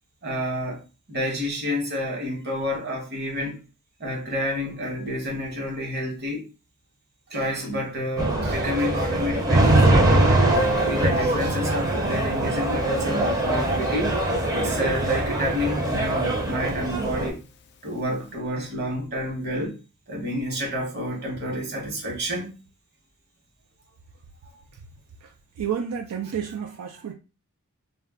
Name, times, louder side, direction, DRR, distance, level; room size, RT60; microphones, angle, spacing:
voice 1, 0.2-0.8 1.1-3.6 4.0-6.5 7.3-10.4 10.8-14.1 14.5-17.4 17.8-19.8 20.1-22.5, left 1 dB, 50° right, 1.0 m, -29 dB
sound 1, 8.2-17.3, right 2 dB, 15° right, 0.6 m, -22 dB
Piano, 10.6-15.9 16.2-16.3 16.5-16.6 17.0-17.1 17.8-18.0, left 1 dB, 50° left, 0.3 m, -36 dB
voice 2, 25.6-27.1, right 8 dB, 85° right, 0.3 m, -30 dB
2.2 x 2.2 x 3.5 m
head